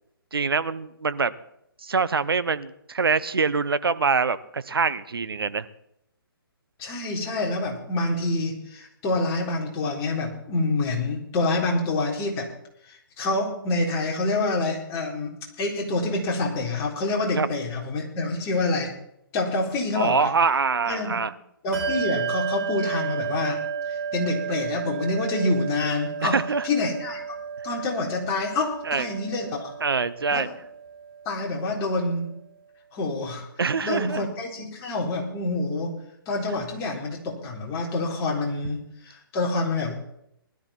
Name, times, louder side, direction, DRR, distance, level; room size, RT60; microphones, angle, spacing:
voice 1, 0.3-1.3 1.8-5.7 17.4-17.5 19.9-21.3 26.2-26.7 28.8-29.1 29.8-30.5 33.6-34.2, right 5 dB, 75° right, 14 dB, 1.0 m, -24 dB
voice 2, 6.8-12.5 12.9-18.9 19.3-20.3 20.9-21.2 21.6-26.4 26.6-27.4 27.6-29.7 30.3-30.5 31.3-32.3 32.9-33.5 33.8-35.9 36.3-39.9, left 2 dB, 25° left, -2 dB, 3.9 m, -27 dB
Bell, 21.7-31.7, right 7 dB, 30° right, 5.5 m, -33 dB
20.0 x 13.0 x 4.3 m, 0.76 s
figure-of-eight pair, 140°, 12 cm